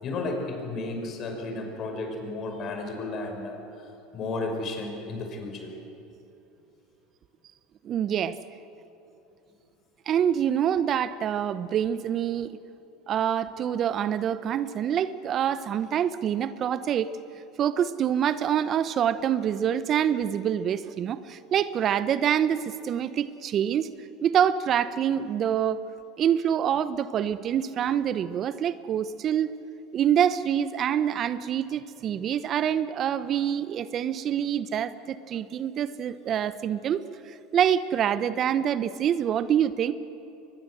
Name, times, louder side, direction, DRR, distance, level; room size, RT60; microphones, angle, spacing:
voice 1, 0.0-3.6 4.1-5.7, left 2 dB, 45° left, 4 dB, 5.8 m, -33 dB
voice 2, 7.8-8.4 10.1-12.5 13.1-17.1 17.6-23.9 24.2-25.8 26.2-29.5 29.9-37.0 37.2-39.9, right 9 dB, 45° right, 14 dB, 0.8 m, -26 dB
23.5 x 21.0 x 7.9 m, 2.8 s
hypercardioid pair, 85°, 0 cm